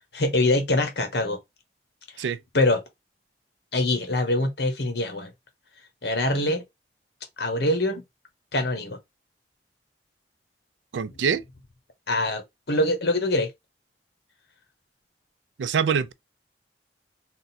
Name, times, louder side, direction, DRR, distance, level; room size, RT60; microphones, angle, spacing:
voice 1, 0.1-1.4 2.2-2.3 2.5-2.8 3.7-5.3 6.0-6.6 7.4-8.0 8.5-9.0 12.1-12.4 12.7-13.5, left 2 dB, 65° left, 1.2 m, -24 dB
voice 2, 10.9-11.4 15.6-16.1, right 6 dB, 85° right, 0.4 m, -24 dB
3.7 x 2.2 x 4.2 m
head